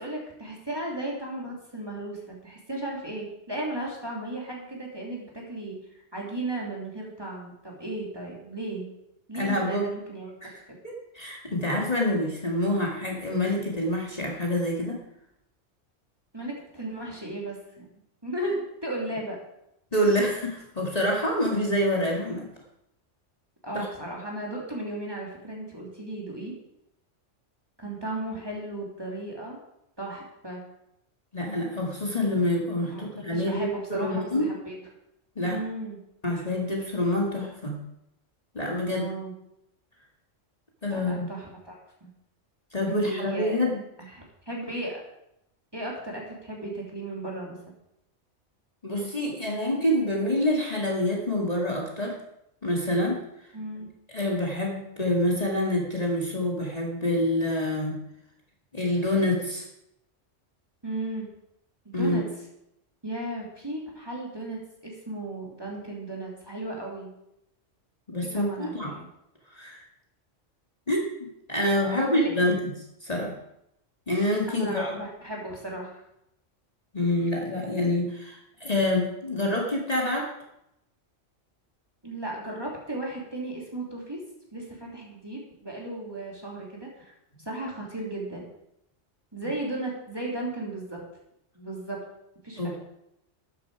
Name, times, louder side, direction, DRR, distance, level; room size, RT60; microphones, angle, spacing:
voice 1, 0.0-5.8 6.1-8.9 9.3-10.3 10.7-10.8 16.3-17.9 18.2-19.4 23.6-26.5 27.8-29.6 30.0-30.6 32.9-34.7 35.4-36.0 38.8-39.3 40.9-42.1 42.8-43.6 44.0-45.0 45.7-47.6 53.5-53.9 60.8-61.3 61.8-62.2 63.0-67.1 68.3-69.0 71.8-72.3 74.5-76.0 82.0-84.2 84.5-87.0 87.4-88.4 89.3-91.0 91.5-92.0 92.4-92.6, right 1 dB, 20° right, -3 dB, 2.9 m, -35 dB
voice 2, 9.3-9.9 10.4-15.0 19.9-22.5 23.7-23.9 31.3-34.5 35.4-35.6 36.2-37.8 38.5-39.1 40.8-41.3 42.7-43.8 48.8-52.2 52.6-53.2 54.1-58.0 58.7-59.6 61.9-62.2 68.1-68.9 69.5-69.8 70.9-71.1 71.5-72.6 73.0-73.3 74.1-75.0 76.9-80.3 92.6-92.8, left 1 dB, 30° left, -2 dB, 2.2 m, -27 dB
12.5 x 9.6 x 4.8 m, 0.81 s
omnidirectional pair, 1.3 m